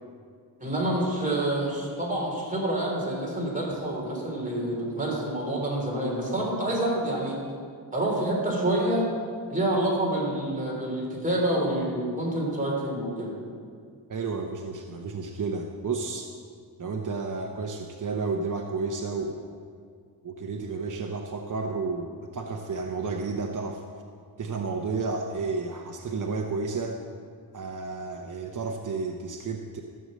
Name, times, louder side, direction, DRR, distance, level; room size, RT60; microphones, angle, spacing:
voice 1, 0.6-7.4 7.9-9.0 9.5-13.4, right 1 dB, 20° right, -3 dB, 3.4 m, -27 dB
voice 2, 14.1-16.3 16.8-19.4 20.2-23.8 24.4-27.0 27.5-29.8, right 4 dB, 45° right, 2 dB, 0.8 m, -31 dB
14.5 x 6.6 x 7.6 m, 2.2 s
wide cardioid pair, 160°, 43 cm